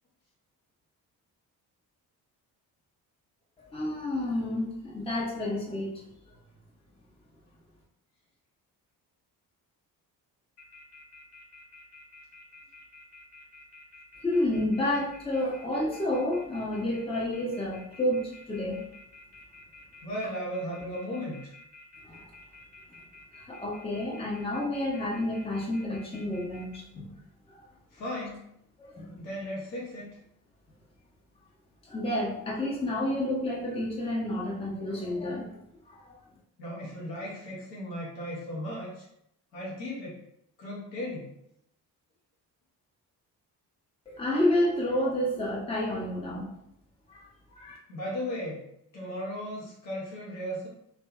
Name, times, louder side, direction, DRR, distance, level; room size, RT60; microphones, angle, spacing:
voice 1, 3.7-6.0 14.2-18.8 22.0-22.3 23.4-27.2 27.5-27.6 28.8-29.2 31.8-35.6 35.9-36.2 44.1-46.5 47.1-47.8, left 1 dB, 10° left, -4 dB, 0.5 m, -30 dB
sound 1, 10.6-26.8, left 2 dB, 45° left, 0.9 m, -51 dB
voice 2, 20.0-21.5 27.9-28.5 29.1-30.2 36.6-39.1 39.5-40.2 40.6-41.3 47.9-48.6 48.9-50.7, equal, 85° left, -5 dB, 0.7 m, -36 dB
2.5 x 2.3 x 2.3 m, 0.75 s
figure-of-eight pair, 40°, 50 cm